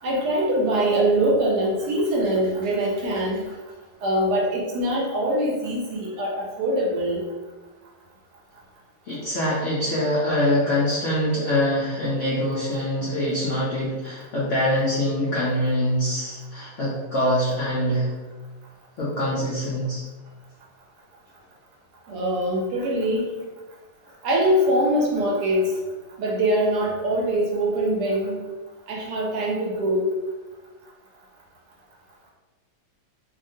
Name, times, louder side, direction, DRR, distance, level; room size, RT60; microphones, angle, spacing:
voice 1, 0.0-3.5 4.0-7.2 22.1-23.3 24.2-25.7 26.2-28.5 28.9-30.1, right 1 dB, 70° right, -2 dB, 1.1 m, -23 dB
voice 2, 9.1-18.1 19.0-20.0, left 1 dB, 75° left, -7 dB, 0.7 m, -24 dB
2.8 x 2.6 x 2.6 m, 1.2 s
omnidirectional pair, 2.0 m